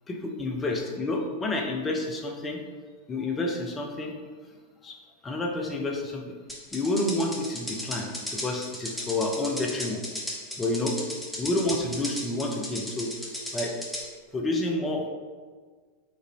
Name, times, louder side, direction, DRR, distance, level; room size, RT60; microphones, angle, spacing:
voice 1, 0.1-2.6 3.1-4.1 4.8-5.0 5.2-6.3 6.7-10.0 10.6-11.0 11.4-13.1 13.5-13.7 14.3-15.1, left 2 dB, 20° left, 1 dB, 0.7 m, -29 dB
sound 1, 6.5-14.0, left 1 dB, ahead, 1.0 m, -35 dB
4.6 x 2.6 x 4.1 m, 1.5 s
figure-of-eight pair, 90°, 0 cm